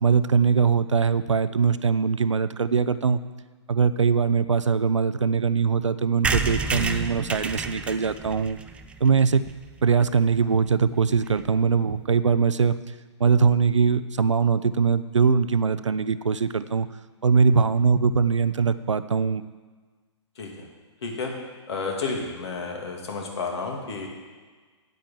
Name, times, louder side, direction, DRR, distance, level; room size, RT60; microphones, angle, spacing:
voice 1, 0.0-3.2 3.7-8.6 9.0-9.4 9.8-12.8 13.2-16.9 17.2-19.4, right 5 dB, 80° right, 14 dB, 0.6 m, -21 dB
sound 1, 6.2-9.9 10.4-10.5 10.6-10.7 11.0-11.1 11.3-11.5, right 4 dB, 5° right, 0.4 m, -30 dB
voice 2, 20.4-20.7 21.0-21.3 21.7-24.1, left 4 dB, 60° left, 1 dB, 2.6 m, -31 dB
9.3 x 8.5 x 7.4 m, 1.4 s
figure-of-eight pair, 120°, 15 cm